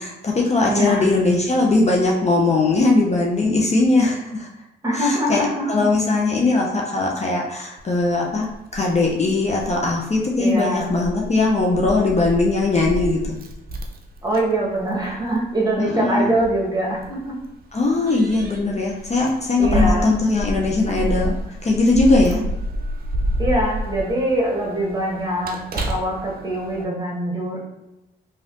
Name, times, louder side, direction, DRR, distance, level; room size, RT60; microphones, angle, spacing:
voice 1, 0.0-4.5 4.9-5.4 5.7-13.4 15.8-16.4 17.7-21.4 21.6-22.4, left 3 dB, 30° left, -2 dB, 0.6 m, -20 dB
voice 2, 0.7-1.1 4.8-5.8 10.4-10.9 14.2-17.4 19.6-20.1 23.4-27.6, right 1 dB, 20° right, -3 dB, 1.2 m, -23 dB
Keys jangling, 7.8-26.8, equal, 45° right, 0.6 m, -29 dB
3.1 x 2.7 x 2.5 m, 0.92 s
supercardioid pair, 50°, 21 cm